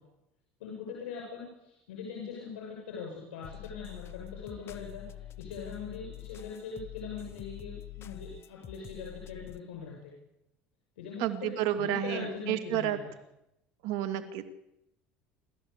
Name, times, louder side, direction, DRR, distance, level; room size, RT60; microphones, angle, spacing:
voice 1, 0.6-10.1 11.0-13.1, left 5 dB, 85° left, -1 dB, 6.9 m, -41 dB
sound 1, 3.4-9.6, left 13 dB, 50° left, 1.1 m, -46 dB
voice 2, 11.2-13.0 13.8-14.4, right 11 dB, 75° right, 8 dB, 2.5 m, -31 dB
27.5 x 13.5 x 8.4 m, 0.86 s
supercardioid pair, 85°, 6 cm